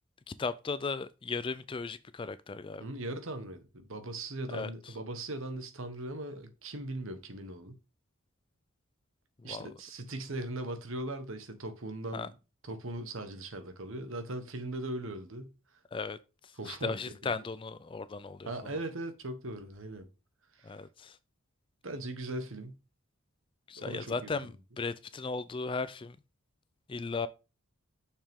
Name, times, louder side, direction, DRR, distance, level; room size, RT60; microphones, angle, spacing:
voice 1, 0.4-2.9 4.5-4.9 9.4-9.7 12.1-12.3 15.9-16.2 16.4-18.8 20.6-21.2 23.7-26.2 26.9-27.3, left 4 dB, 25° left, 0.3 m, -36 dB
voice 2, 2.8-7.7 9.4-12.3 12.7-15.5 16.6-17.0 17.2-17.4 18.4-20.1 20.5-20.7 21.8-22.8 23.8-24.3, right 2 dB, 65° right, 1.2 m, -39 dB
6.6 x 5.8 x 3.6 m
head